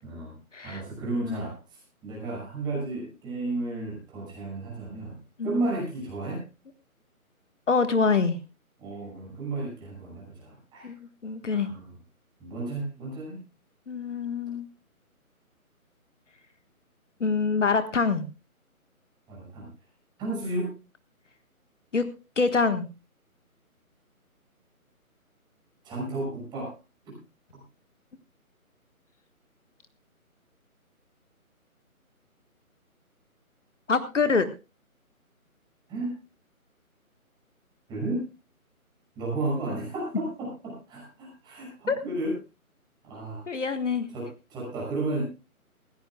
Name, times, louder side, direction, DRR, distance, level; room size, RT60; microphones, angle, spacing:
voice 1, 0.0-0.4 0.6-1.5 2.0-6.4 8.8-10.9 11.5-11.9 12.4-13.4 19.3-19.7 20.2-20.7 25.8-26.7 35.9-36.1 37.9-38.2 39.2-42.4 43.0-43.4 44.1-45.2, right 2 dB, 10° right, -3 dB, 6.0 m, -33 dB
voice 2, 7.7-8.4 10.8-11.0 11.2-11.7 13.9-14.7 17.2-18.2 21.9-22.1 22.4-22.9 33.9-34.5 41.9-42.0 43.5-44.1, left 4 dB, 55° left, 10 dB, 1.5 m, -25 dB
20.5 x 16.0 x 2.3 m, 0.29 s
figure-of-eight pair, 150°, 44 cm